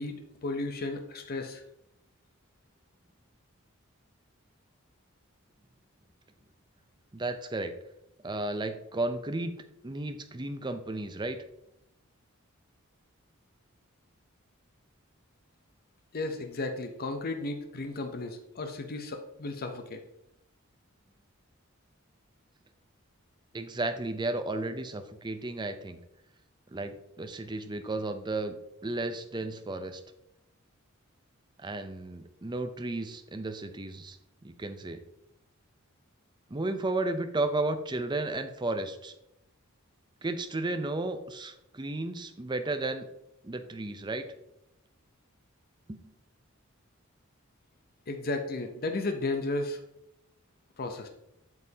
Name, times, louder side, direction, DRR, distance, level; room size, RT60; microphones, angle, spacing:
voice 1, 0.0-1.6 16.1-20.0 48.1-49.8 50.8-51.1, left 2 dB, 45° left, 5 dB, 0.7 m, -34 dB
voice 2, 7.1-7.7 8.2-9.5 9.8-11.4 23.5-26.0 26.7-28.6 28.8-30.0 31.6-34.2 34.4-35.0 36.5-39.1 40.2-43.0 43.4-44.3 45.9-46.0, right 2 dB, 20° right, 8 dB, 0.6 m, -33 dB
7.9 x 7.4 x 2.9 m, 0.82 s
head